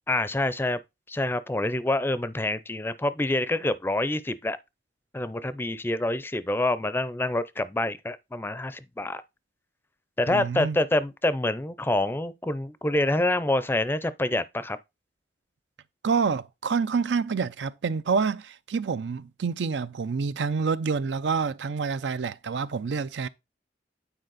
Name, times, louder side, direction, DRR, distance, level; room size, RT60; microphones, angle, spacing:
voice 1, 0.1-0.8 1.1-4.6 5.1-9.2 10.2-14.8, left 1 dB, 10° left, 0.4 m, -27 dB
voice 2, 10.3-10.8 16.0-23.3, right 5 dB, 85° right, 0.5 m, -27 dB
9.1 x 4.2 x 4.0 m
head